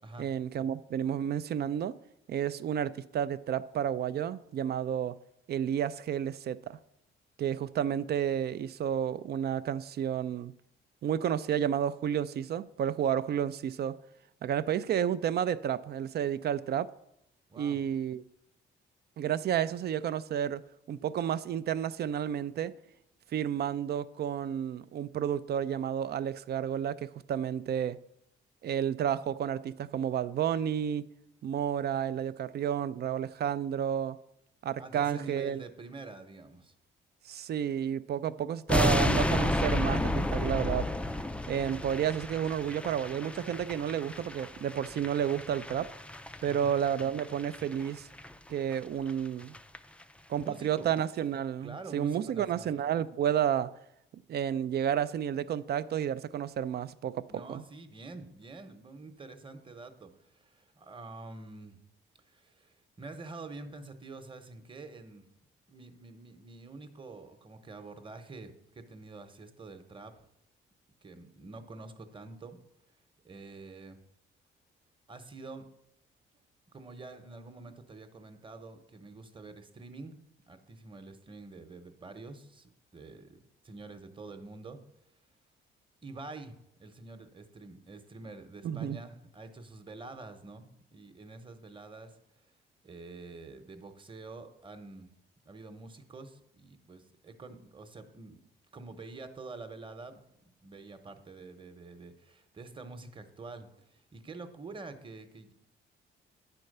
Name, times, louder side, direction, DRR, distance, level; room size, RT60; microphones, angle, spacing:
voice 1, 0.2-1.9 2.3-5.2 5.5-6.8 7.4-10.5 11.0-14.0 14.4-16.9 17.6-18.2 19.2-20.6 20.9-22.7 23.3-28.0 28.6-31.1 31.4-34.2 34.6-35.6 37.3-40.9 41.5-45.9 46.4-48.1 48.5-49.5 50.3-53.7 54.3-57.6 88.6-89.0, right 9 dB, 55° right, 0.5 m, -31 dB
voice 2, 17.5-17.8 34.8-36.7 46.5-46.7 50.4-50.9 51.6-52.8 57.3-61.8 62.3-65.2 65.7-70.1 71.0-72.6 73.2-74.0 75.1-75.7 76.7-80.1 80.5-84.8 86.0-86.5 86.8-92.2 92.8-95.1 95.5-98.4 98.7-100.2 100.6-105.5, right 3 dB, 25° right, 1.0 m, -47 dB
sound 1, 38.7-47.9 48.1-48.3 48.7-48.8 49.1-49.2 49.4-49.8 50.0-50.1, left 1 dB, 5° left, 0.4 m, -32 dB
9.6 x 4.4 x 6.6 m
cardioid pair, 90°, 20 cm